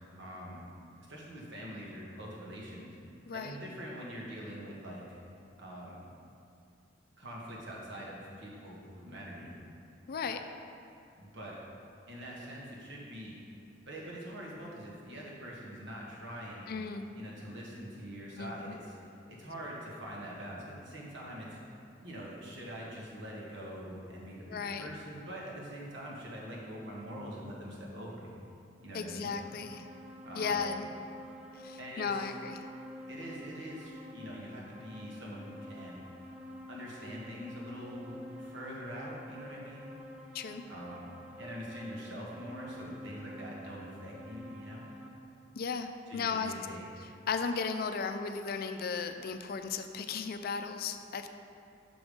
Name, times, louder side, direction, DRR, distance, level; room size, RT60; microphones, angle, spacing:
voice 1, 0.2-0.7 1.1-3.0 3.3-5.2 5.6-6.1 7.2-9.6 10.2-10.4 11.2-11.6 12.1-13.4 13.9-16.8 17.2-19.0 19.3-21.6 22.0-28.3 28.8-29.3 30.2-30.6 31.8-32.3 33.1-36.0 36.7-40.0 40.7-44.9 46.1-46.9, equal, 75° right, -4 dB, 1.5 m, -44 dB
voice 2, 3.3-3.6 10.1-10.4 16.7-17.1 18.4-18.8 24.5-24.9 28.9-29.9 30.4-30.9 31.5-32.6 40.3-40.6 45.6-46.5 47.0-51.3, left 5 dB, 55° left, 8 dB, 0.4 m, -35 dB
sound 1, 28.8-45.1, equal, 5° right, 0.8 m, -49 dB
6.1 x 4.9 x 5.2 m, 2.5 s
head